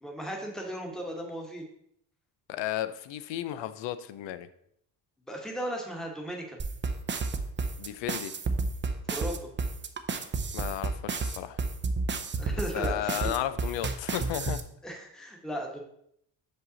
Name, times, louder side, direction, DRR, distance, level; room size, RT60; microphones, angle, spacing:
voice 1, 0.0-1.6 5.3-6.6 9.1-9.5 12.4-13.2 14.8-15.8, right 1 dB, ahead, 1 dB, 1.2 m, -36 dB
voice 2, 2.5-4.5 7.8-8.3 10.5-11.6 12.5-14.6, left 12 dB, 75° left, 13 dB, 0.6 m, -34 dB
sound 1, 6.6-14.6, right 4 dB, 25° right, 0.6 m, -30 dB
5.7 x 5.4 x 4.0 m, 0.71 s
cardioid pair, 105°, 45 cm